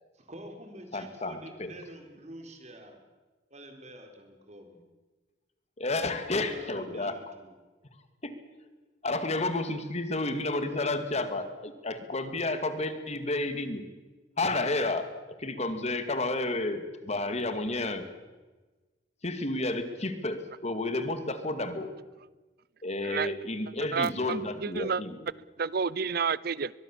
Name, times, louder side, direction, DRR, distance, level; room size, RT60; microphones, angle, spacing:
voice 1, 0.1-3.0 3.5-4.8 6.3-7.5, right 1 dB, 40° right, 5 dB, 4.1 m, -47 dB
voice 2, 0.9-1.7 5.8-7.2 8.2-8.4 9.0-13.8 14.4-15.1 15.4-18.1 19.2-21.9 22.8-25.2, left 2 dB, 40° left, 9 dB, 2.2 m, -31 dB
voice 3, 23.0-23.3 23.9-25.0 25.6-26.7, right 5 dB, 60° right, 22 dB, 0.6 m, -30 dB
23.0 x 21.5 x 7.3 m, 1.2 s
head